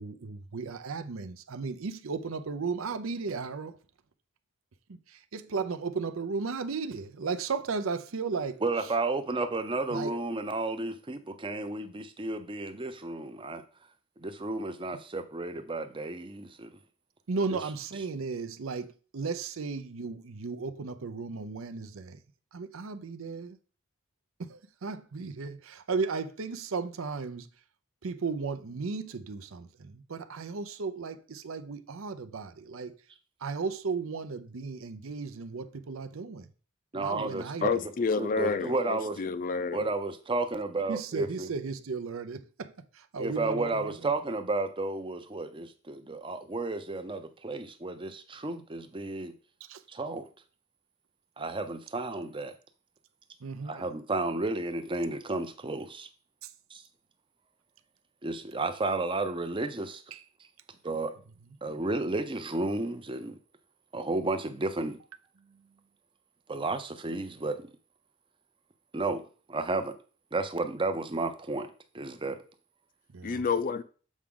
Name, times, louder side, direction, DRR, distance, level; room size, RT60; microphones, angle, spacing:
voice 1, 0.0-3.7 4.9-8.6 9.9-10.2 17.3-22.2 22.5-23.6 24.4-27.5 28.0-33.0 33.4-36.5 36.9-37.8 40.9-44.0 49.7-49.8 53.4-53.8 56.4-56.5 60.1-60.2 65.4-65.7 73.1-73.4, right 4 dB, 75° right, 0.6 m, -35 dB
voice 2, 8.6-13.6 14.2-16.7 36.9-37.7 38.2-39.2 39.7-41.5 43.2-49.3 49.9-50.3 51.4-52.5 53.6-56.1 56.7-56.8 58.2-60.0 60.8-61.1 61.6-63.4 63.9-65.0 66.5-67.7 68.9-69.9 70.3-71.7 71.9-72.4, right 2 dB, 25° right, 0.6 m, -32 dB
voice 3, 37.6-39.9 73.2-73.8, left 5 dB, 40° left, 0.4 m, -29 dB
7.3 x 4.8 x 3.7 m
head